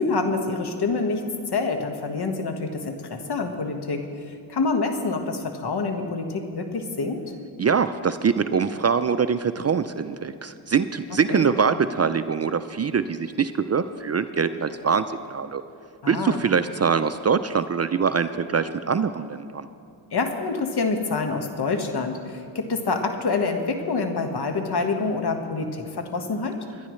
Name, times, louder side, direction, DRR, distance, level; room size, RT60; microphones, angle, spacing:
voice 1, 0.0-7.2 11.3-11.5 16.0-16.4 20.1-26.6, left 3 dB, 55° left, 5 dB, 1.6 m, -27 dB
voice 2, 7.6-15.0 15.3-15.6 16.1-19.7, right 6 dB, 35° right, 11 dB, 0.5 m, -23 dB
22.5 x 11.0 x 3.2 m, 2.5 s
cardioid pair, 60°, 48 cm